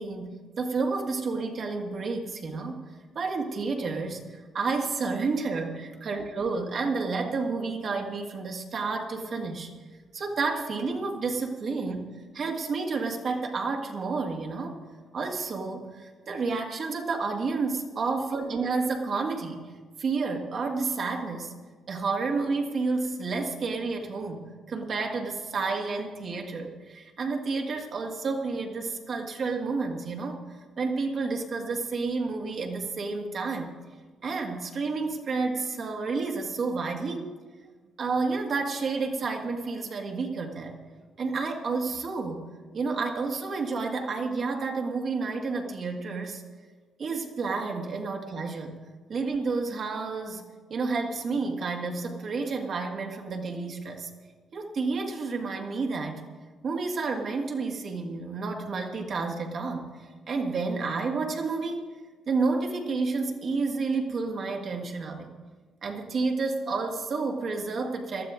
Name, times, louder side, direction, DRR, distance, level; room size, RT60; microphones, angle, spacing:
voice 1, 0.0-2.8 3.2-9.7 10.1-12.1 12.3-14.8 15.1-19.7 20.0-21.5 21.9-30.4 30.8-33.7 34.2-37.3 38.0-40.7 41.2-42.5 42.7-46.4 47.0-48.8 49.1-54.1 54.5-56.2 56.6-59.9 60.3-61.9 62.3-65.3 65.8-68.3, right 4 dB, 55° right, 2 dB, 2.0 m, -30 dB
19.0 x 12.5 x 3.8 m, 1.4 s
cardioid pair, 75°, 0 cm